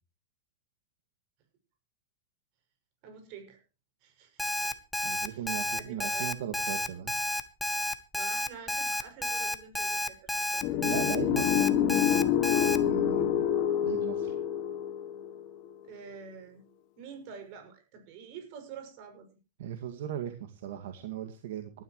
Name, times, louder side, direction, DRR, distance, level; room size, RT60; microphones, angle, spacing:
voice 1, 3.0-3.6 4.0-4.8 5.3-5.5 5.8-6.3 8.1-10.9 15.8-16.7 17.0-19.3, right 6 dB, 45° right, 6 dB, 6.5 m, -47 dB
Alarm, 4.4-12.8, left 1 dB, 5° left, 1.1 m, -31 dB
voice 2, 5.0-7.1 10.8-12.2 12.7-13.5 13.8-14.4 19.6-21.8, right 10 dB, 70° right, 6 dB, 2.1 m, -38 dB
sound 1, 10.6-15.7, left 10 dB, 40° left, 1.8 m, -27 dB
19.0 x 13.0 x 3.1 m, 0.32 s
supercardioid pair, 160°, 0 cm